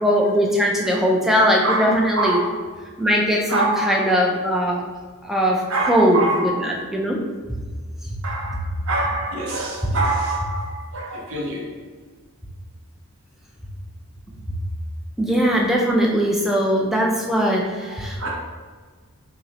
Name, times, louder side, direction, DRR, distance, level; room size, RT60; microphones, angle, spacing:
voice 1, 0.0-2.4 3.0-4.8 5.2-6.2 6.9-7.2 15.2-18.3, equal, ahead, -2 dB, 0.4 m, -20 dB
voice 2, 1.6-2.4 3.5-4.1 5.7-6.5 8.2-11.9 17.8-17.9 18.2-18.3, right 2 dB, 65° right, -3 dB, 0.7 m, -25 dB
5.3 x 2.0 x 2.8 m, 1.5 s
head